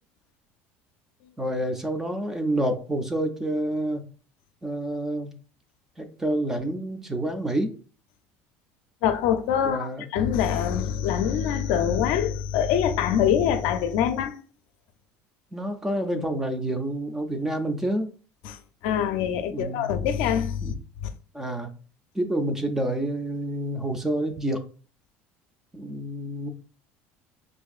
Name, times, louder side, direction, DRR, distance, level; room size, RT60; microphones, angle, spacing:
voice 1, 1.4-4.0 4.6-5.3 6.0-7.7 9.6-10.1 15.5-18.1 19.5-19.8 20.6-20.7 21.3-21.7 22.2-24.6 25.7-26.5, right 1 dB, 10° right, 0.4 m, -28 dB
voice 2, 9.0-14.4 18.4-21.1, left 9 dB, 70° left, 0.5 m, -25 dB
5.6 x 2.5 x 2.4 m
cardioid pair, 170°, 5 cm